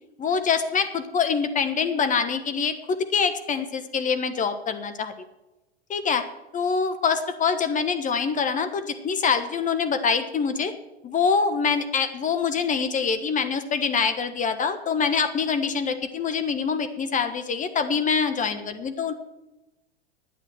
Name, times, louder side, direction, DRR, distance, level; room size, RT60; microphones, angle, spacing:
voice 1, 0.2-5.1 5.9-6.2 6.5-10.7 11.0-19.1, left 5 dB, 25° left, 9 dB, 1.1 m, -25 dB
11.0 x 8.7 x 7.4 m, 0.98 s
hypercardioid pair, 100°, 32 cm